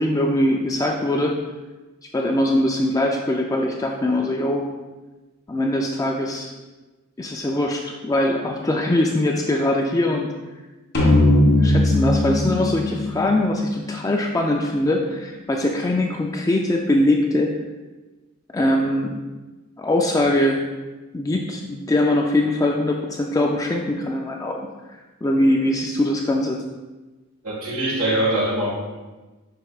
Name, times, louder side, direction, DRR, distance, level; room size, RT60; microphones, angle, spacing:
voice 1, 0.0-1.4 2.1-4.7 5.5-6.5 7.2-10.3 11.6-17.5 18.5-19.2 19.8-20.6 21.1-26.6, left 1 dB, 15° left, 1 dB, 0.4 m, -22 dB
sound 1, 10.9-14.4, left 1 dB, 50° left, 1.7 m, -19 dB
voice 2, 27.4-28.7, right 1 dB, 90° right, -5 dB, 1.7 m, -22 dB
7.5 x 5.6 x 2.4 m, 1.2 s
head